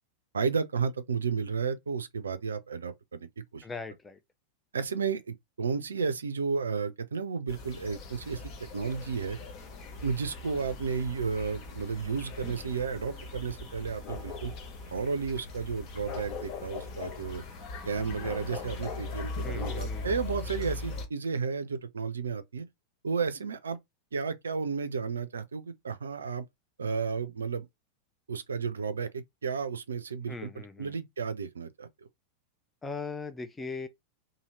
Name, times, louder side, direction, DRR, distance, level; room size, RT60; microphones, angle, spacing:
voice 1, 0.3-3.7 4.7-9.4 10.0-14.5 14.9-17.4 17.8-22.7 23.0-23.8 24.1-26.4 26.8-27.7 28.3-30.5 30.8-31.9, right 5 dB, 70° right, 0.4 m, -32 dB
voice 2, 3.6-4.2 19.4-20.2 30.3-30.9 32.8-33.9, left 4 dB, 15° left, 0.4 m, -39 dB
sound 1, 7.5-21.1, left 3 dB, 40° left, 0.8 m, -40 dB
2.7 x 2.7 x 2.9 m
figure-of-eight pair, 90°, 0 cm